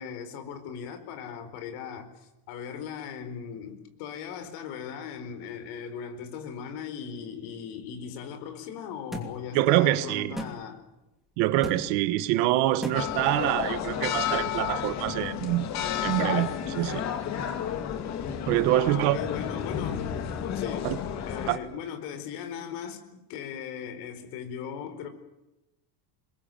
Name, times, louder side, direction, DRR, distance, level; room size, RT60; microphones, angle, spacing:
voice 1, 0.0-10.8 18.7-20.1 20.5-21.0 21.2-25.1, left 7 dB, 50° left, 4.5 m, -38 dB
sound 1, 9.1-9.3 10.4-10.5 11.6-11.8 12.8-13.0, equal, ahead, 2.9 m, -34 dB
voice 2, 9.5-10.4 11.4-15.7 16.0-17.0 18.5-19.2 20.8-21.0 21.5-21.6, right 15 dB, 55° right, 1.4 m, -25 dB
sound 2, 12.9-21.6, left 9 dB, 35° left, 2.3 m, -31 dB
27.0 x 21.5 x 9.1 m
cardioid pair, 180°, 49 cm